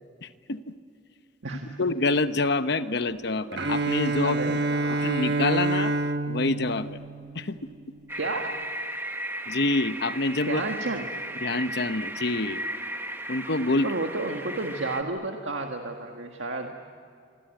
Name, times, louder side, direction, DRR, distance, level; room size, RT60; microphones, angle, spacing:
voice 1, 0.2-0.7 1.8-4.6 5.0-5.9 6.3-7.0 7.3-7.6 9.5-10.6 11.4-12.6 13.3-13.9, left 2 dB, 60° left, 11 dB, 1.0 m, -27 dB
voice 2, 1.4-1.8 4.2-5.2 8.1-8.6 10.5-11.2 13.8-16.7, right 2 dB, 75° right, 3 dB, 1.7 m, -32 dB
Bowed string instrument, 3.5-7.6, right 2 dB, 60° right, 1.3 m, -27 dB
sound 1, 8.1-15.0, right 1 dB, 10° right, 1.4 m, -35 dB
26.0 x 24.5 x 9.1 m, 2.3 s
head